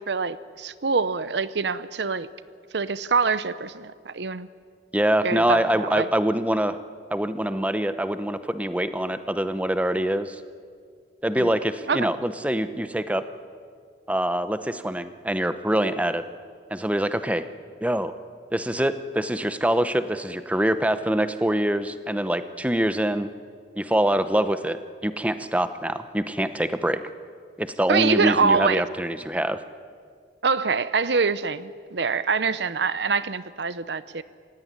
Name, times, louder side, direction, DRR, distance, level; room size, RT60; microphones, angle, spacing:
voice 1, 0.0-2.3 2.7-4.5 5.2-6.1 11.4-11.5 11.9-12.1 27.9-28.8 30.4-34.2, right 5 dB, 70° right, 15 dB, 0.8 m, -25 dB
voice 2, 4.9-6.8 7.1-10.4 11.2-13.2 14.1-16.2 16.7-17.4 17.8-18.1 18.5-23.3 23.8-24.8 25.0-27.0 27.6-29.6, right 1 dB, 10° right, 11 dB, 0.8 m, -24 dB
27.5 x 16.5 x 9.6 m, 2.1 s
head